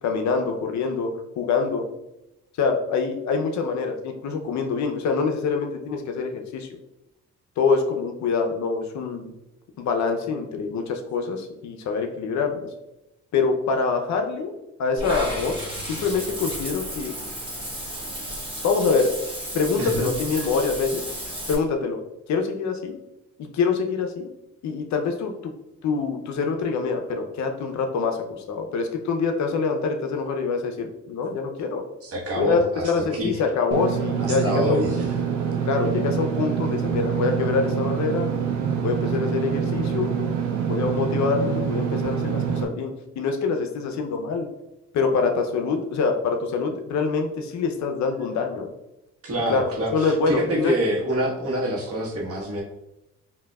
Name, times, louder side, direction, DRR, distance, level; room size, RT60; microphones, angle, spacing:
voice 1, 0.0-1.1 1.4-1.8 2.6-6.7 7.6-9.3 9.8-12.7 13.3-14.5 14.8-17.1 18.6-19.1 19.5-21.1 21.5-22.0 22.3-23.0 23.4-24.3 24.6-25.5 25.8-31.8 32.4-35.0 35.6-38.3 38.8-40.1 40.7-44.5 44.9-48.7 49.5-49.6 49.9-50.7, left 4 dB, 65° left, 5 dB, 0.6 m, -25 dB
Water / Bathtub (filling or washing), 15.0-21.5, equal, 15° right, 1.5 m, -33 dB
voice 2, 19.8-20.5 32.0-33.4 34.2-35.1 49.2-52.6, equal, 50° right, -3 dB, 1.3 m, -27 dB
Engine / Mechanisms, 33.7-42.6, right 7 dB, 70° right, 0.6 m, -25 dB
5.0 x 2.7 x 2.3 m, 0.92 s
cardioid pair, 90°, 30 cm